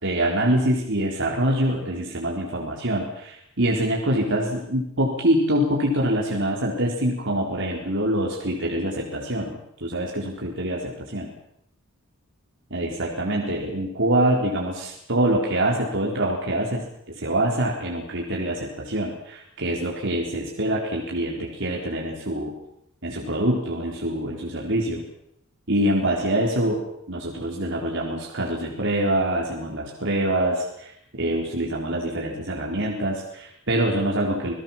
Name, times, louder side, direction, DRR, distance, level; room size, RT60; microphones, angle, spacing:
voice 1, 0.0-11.3 12.7-16.8 17.2-22.6 23.0-25.1 25.7-34.5, right 1 dB, 60° right, -2 dB, 4.3 m, -25 dB
28.5 x 18.0 x 7.4 m, 0.75 s
head